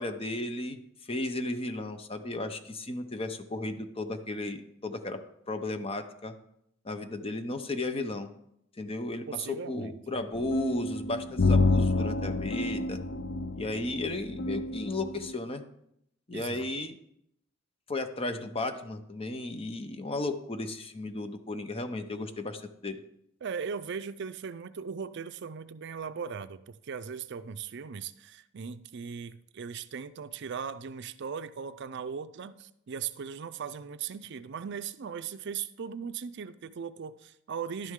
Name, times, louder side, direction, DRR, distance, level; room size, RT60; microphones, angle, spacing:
voice 1, 0.0-5.2 5.5-6.3 6.8-8.3 8.8-13.0 13.6-15.6 16.3-16.9 17.9-23.0, left 2 dB, 30° left, 8 dB, 0.8 m, -34 dB
voice 2, 9.3-10.2 16.3-16.7 23.4-37.9, right 6 dB, 60° right, 13 dB, 0.5 m, -38 dB
sound 1, 10.4-15.3, left 3 dB, 60° left, 0.5 m, -28 dB
11.5 x 9.5 x 3.7 m, 0.76 s
head